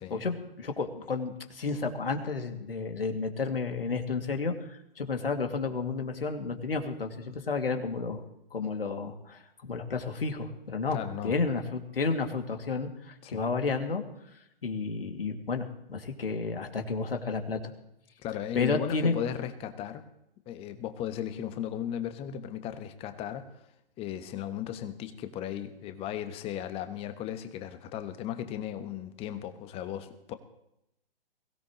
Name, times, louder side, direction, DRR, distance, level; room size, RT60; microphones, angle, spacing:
voice 1, 0.1-8.2 8.5-14.0 14.6-17.7 18.5-19.1, left 4 dB, 75° left, 4 dB, 2.6 m, -31 dB
voice 2, 10.9-11.3 13.2-13.4 18.2-20.0 20.5-23.6 24.0-30.3, left 10 dB, 20° left, 10 dB, 1.3 m, -36 dB
22.0 x 17.0 x 3.2 m, 0.83 s
figure-of-eight pair, 125°, 29 cm